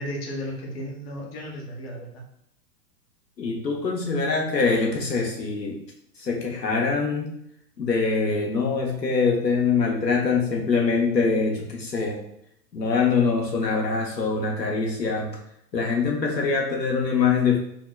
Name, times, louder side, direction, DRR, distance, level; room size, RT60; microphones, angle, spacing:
voice 1, 0.0-2.2, equal, 35° left, -1 dB, 1.0 m, -34 dB
voice 2, 3.4-5.8 6.2-7.3 7.8-12.2 12.7-15.3 15.7-17.6, left 4 dB, 80° left, -1 dB, 0.9 m, -24 dB
4.7 x 2.9 x 2.2 m, 0.75 s
figure-of-eight pair, 110°, 49 cm